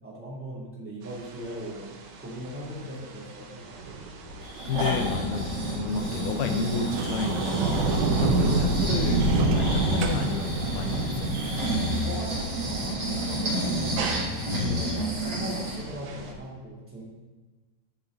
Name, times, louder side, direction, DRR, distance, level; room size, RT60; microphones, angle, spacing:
voice 1, 0.0-1.9 2.2-3.7 12.0-13.7 14.4-17.0, right 1 dB, 5° right, -7 dB, 1.5 m, -39 dB
sound 1, 1.0-16.3, right 2 dB, 70° right, 2.4 m, -30 dB
Breathing, 4.4-15.8 16.3-16.4, right 1 dB, 35° right, 4.6 m, -31 dB
voice 2, 4.7-7.8 8.2-11.5 14.3-14.9, left 6 dB, 85° left, 6 dB, 2.1 m, -31 dB
Sliding door, 6.9-12.0, right 7 dB, 90° right, 3.1 m, -34 dB
12.5 x 7.2 x 4.0 m, 1.3 s
omnidirectional pair, 5.2 m